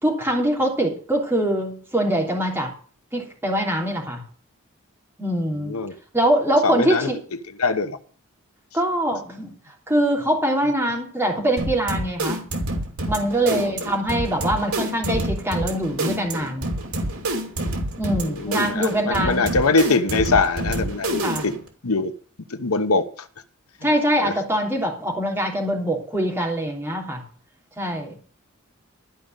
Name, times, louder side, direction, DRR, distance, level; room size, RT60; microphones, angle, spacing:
voice 1, 0.0-2.7 3.1-4.2 5.2-5.7 6.1-7.2 8.7-9.5 9.9-12.4 13.1-16.7 18.0-19.5 21.2-21.4 23.8-27.2 27.8-28.2, right 1 dB, 10° right, 3.2 m, -23 dB
voice 2, 5.6-5.9 6.6-7.1 7.6-8.0 13.5-13.9 18.2-21.5 21.8-22.1 22.5-23.3 24.2-24.3 27.9-28.0, left 3 dB, 85° left, 1.0 m, -23 dB
sound 1, 11.6-21.7, right 1 dB, 80° right, 2.8 m, -28 dB
13.0 x 5.3 x 9.0 m
head